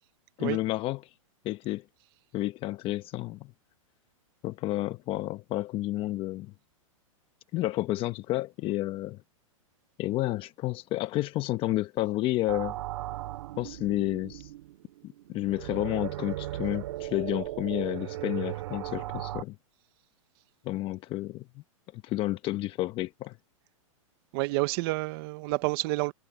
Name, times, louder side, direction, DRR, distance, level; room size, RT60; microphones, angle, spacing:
voice 1, 0.4-1.1 1.4-1.8 2.3-3.5 4.4-6.5 7.5-9.2 10.0-12.8 13.6-14.5 15.3-19.6 20.6-21.5 21.9-23.4, left 16 dB, 30° left, 1.0 m, -30 dB
sound 1, 12.5-19.4, right 15 dB, 60° right, 2.5 m, -37 dB
voice 2, 24.3-26.1, right 24 dB, 45° right, 1.0 m, -29 dB
hypercardioid pair, 135°, 17 cm